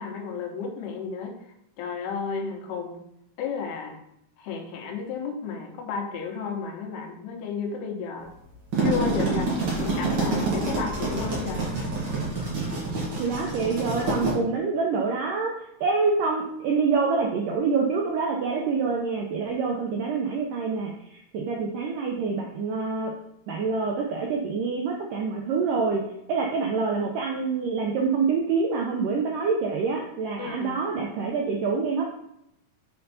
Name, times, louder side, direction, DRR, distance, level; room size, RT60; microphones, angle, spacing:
voice 1, 0.0-1.4 1.8-3.0 3.4-4.0 4.4-8.3 8.8-9.5 9.8-11.7 30.4-30.7, left 5 dB, 80° left, 2 dB, 2.9 m, -32 dB
sound 1, 8.5-14.3, right 2 dB, 50° right, 1.6 m, -27 dB
voice 2, 13.2-15.5 15.8-20.9 21.3-23.1 23.5-26.0 26.3-32.0, right 4 dB, 85° right, -1 dB, 1.9 m, -26 dB
6.5 x 4.4 x 4.1 m, 0.78 s
omnidirectional pair, 4.6 m